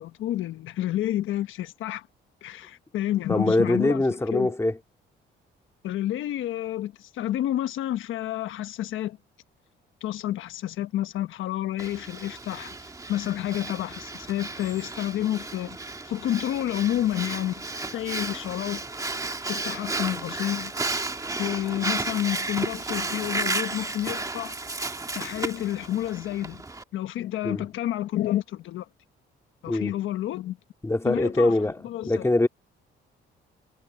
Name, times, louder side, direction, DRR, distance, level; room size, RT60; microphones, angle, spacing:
voice 1, 0.0-2.1 2.4-4.0 4.3-4.5 5.8-9.2 10.0-12.7 13.1-15.8 16.0-18.8 19.5-20.7 21.4-24.5 25.1-26.6 26.9-28.9 29.6-30.6 31.0-31.6 31.8-32.3, left 13 dB, 80° left, 1.2 m, -29 dB
voice 2, 3.3-4.8 27.4-27.6 29.7-29.9 30.8-32.5, left 2 dB, 15° left, 2.9 m, -23 dB
Breathing, 11.8-26.8, right 2 dB, 15° right, 1.8 m, -33 dB
cardioid pair, 90°, 20 cm